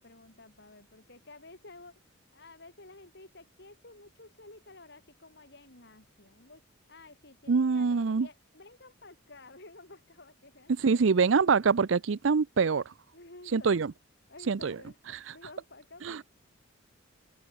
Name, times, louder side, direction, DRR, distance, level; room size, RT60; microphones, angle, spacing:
voice 1, 0.0-2.0 2.3-6.6 6.9-11.5 13.1-13.8 14.3-16.2, left 2 dB, 55° left, 6.1 m, -52 dB
voice 2, 7.5-8.3 10.8-12.9 13.5-13.9 14.5-14.8 15.1-15.4 16.0-16.2, right 5 dB, 65° right, 0.5 m, -25 dB
head